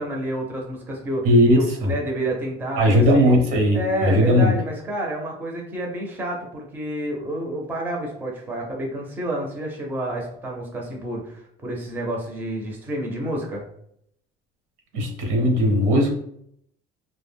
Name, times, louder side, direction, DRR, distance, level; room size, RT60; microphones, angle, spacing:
voice 1, 0.0-1.3 1.6-3.4 3.7-13.7, right 1 dB, 10° right, -1 dB, 0.5 m, -29 dB
voice 2, 1.2-1.9 2.8-4.5 14.9-16.1, equal, 80° right, 1 dB, 0.8 m, -18 dB
2.1 x 2.1 x 3.4 m, 0.69 s
cardioid pair, 160°, 16 cm